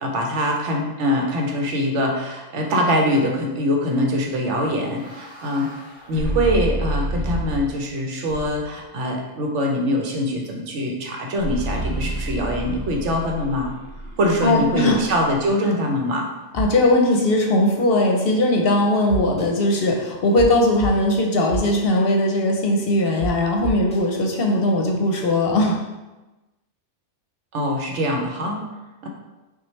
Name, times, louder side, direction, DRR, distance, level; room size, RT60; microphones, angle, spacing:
voice 1, 0.0-5.7 6.1-13.7 14.2-16.3 27.5-28.6 29.0-29.1, equal, 80° right, 1 dB, 1.1 m, -23 dB
sound 1, 4.5-7.8 8.3-8.8 11.4-15.5, right 1 dB, 25° right, 1.3 m, -30 dB
voice 2, 14.4-15.0 16.5-25.8, left 1 dB, 60° left, 1 dB, 0.7 m, -19 dB
sound 2, 16.5-16.6 17.1-17.2 19.1-19.5 20.4-20.5 20.8-20.9 21.5-21.7 23.2-23.3 23.6-24.0, right 2 dB, 5° left, 0.6 m, -28 dB
5.9 x 2.3 x 3.1 m, 1.1 s
omnidirectional pair, 1.2 m